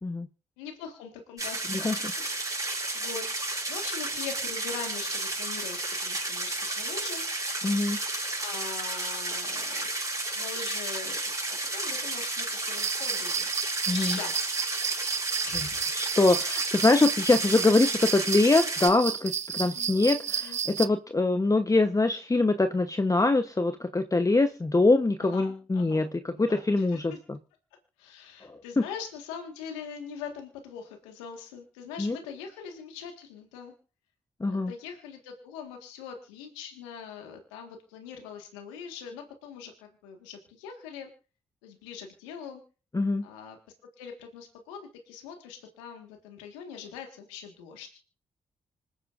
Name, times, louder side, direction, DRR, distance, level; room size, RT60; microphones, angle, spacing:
voice 1, 0.6-1.6 2.0-3.2 3.7-7.3 8.4-9.9 10.3-11.2 11.5-13.5 13.9-14.6 15.4-15.9 16.5-16.7 19.5-19.9 20.4-20.6 25.2-27.0 28.0-33.7 34.5-41.1 41.6-42.6 43.2-43.6 44.0-47.9, left 7 dB, 90° left, 3 dB, 1.7 m, -42 dB
sound 1, 1.4-18.9, right 2 dB, 25° right, 6.0 m, -32 dB
voice 2, 1.7-2.4 7.6-8.0 13.9-14.2 15.5-15.7 15.9-26.1 26.4-27.4 28.4-28.8 32.0-32.2 34.4-34.7 42.9-43.3, left 2 dB, 20° left, 8 dB, 1.0 m, -24 dB
sound 2, 12.8-20.9, right 7 dB, 50° right, 0.7 m, -32 dB
26.0 x 9.0 x 2.6 m, 0.38 s
hypercardioid pair, 40°, 15 cm